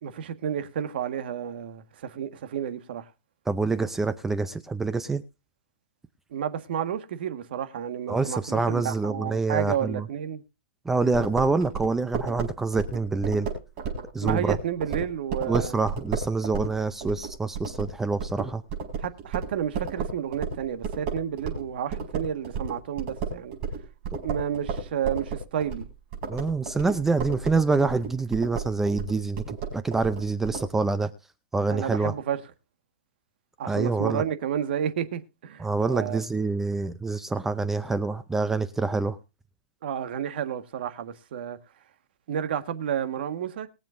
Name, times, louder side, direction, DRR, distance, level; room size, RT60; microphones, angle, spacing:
voice 1, 0.0-3.1 6.3-10.4 14.2-15.8 19.0-23.6 24.2-25.9 31.7-32.4 33.6-36.2 39.8-41.6 42.3-43.7, right 9 dB, 55° right, 1.5 m, -31 dB
voice 2, 3.5-5.2 8.1-10.0 10.9-13.5 14.1-14.6 15.5-18.6 26.3-31.1 31.5-32.1 33.7-34.2 35.6-39.2, right 3 dB, 5° right, 0.5 m, -26 dB
sound 1, 11.1-21.7 21.9-30.7, right 5 dB, 30° right, 4.9 m, -33 dB
22.0 x 7.5 x 2.6 m
hypercardioid pair, 170°, 6 cm